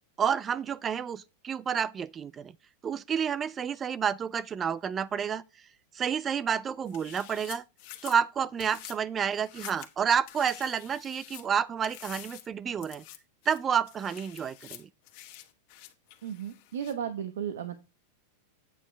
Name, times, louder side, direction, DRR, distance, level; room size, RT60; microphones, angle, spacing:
voice 1, 0.2-2.5 2.8-5.4 5.9-7.6 8.0-13.0 13.5-14.9, right 7 dB, 20° right, 0.4 m, -30 dB
sound 1, 6.9-8.2 8.6-9.0 9.3-9.9 10.3-11.5 11.8-12.5 12.8-13.2 13.4-16.9, left 14 dB, 55° left, 1.5 m, -47 dB
voice 2, 16.2-17.8, right 9 dB, 85° right, 1.0 m, -34 dB
8.4 x 7.2 x 3.3 m
supercardioid pair, 135°, 0 cm